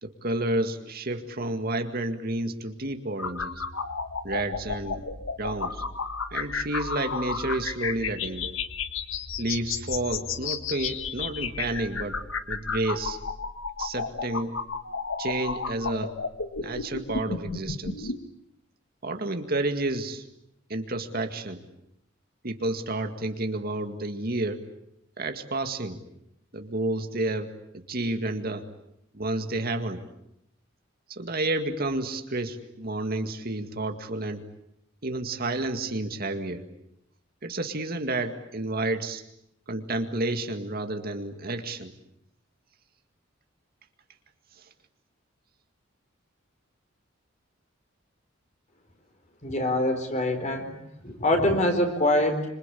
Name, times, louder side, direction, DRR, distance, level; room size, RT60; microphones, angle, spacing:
voice 1, 0.0-3.6 4.2-5.1 5.4-5.8 6.3-8.6 9.4-12.1 12.5-13.2 13.8-14.6 15.2-16.1 16.6-18.1 19.0-20.2 20.7-21.6 22.4-24.6 25.2-26.0 26.5-28.7 29.1-30.0 31.1-34.4 35.0-36.6 37.4-39.2 39.7-41.9 44.6-44.7, right 2 dB, 50° right, 6 dB, 2.1 m, -30 dB
sound 1, 3.2-18.2, left 5 dB, 90° left, 1.7 m, -33 dB
voice 2, 49.4-50.7 51.0-52.5, left 1 dB, 35° left, 6 dB, 4.4 m, -24 dB
26.5 x 26.5 x 8.5 m, 0.80 s
head